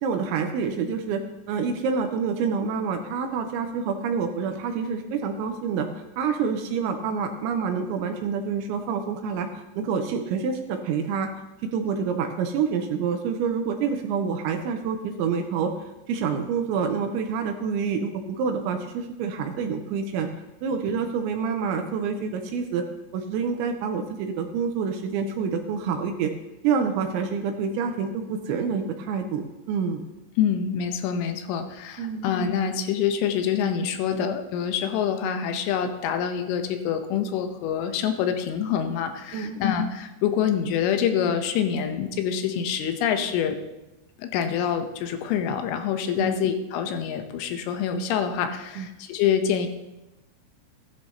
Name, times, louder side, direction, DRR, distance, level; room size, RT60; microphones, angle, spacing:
voice 1, 0.0-1.2 1.5-5.9 6.2-9.5 9.8-11.3 11.6-15.7 16.1-20.3 20.6-22.8 23.1-26.3 26.6-30.0 32.0-32.3 39.3-39.6 46.2-46.4 48.8-48.9, right 6 dB, 85° right, 5 dB, 2.8 m, -27 dB
voice 2, 30.4-43.6 44.2-49.7, left 8 dB, 80° left, 7 dB, 3.3 m, -26 dB
15.5 x 11.0 x 2.8 m, 1.0 s
omnidirectional pair, 5.7 m